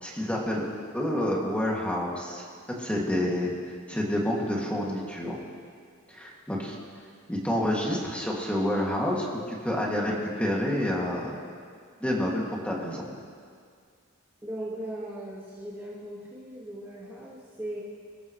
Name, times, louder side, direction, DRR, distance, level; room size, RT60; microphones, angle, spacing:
voice 1, 0.0-0.6 0.9-2.4 2.8-3.5 3.9-5.4 6.1-6.8 7.3-11.4 12.0-13.0, left 1 dB, 5° left, -3 dB, 2.3 m, -28 dB
voice 2, 14.4-17.8, right 1 dB, 10° right, -6 dB, 1.8 m, -38 dB
25.5 x 13.5 x 3.2 m, 2.1 s
head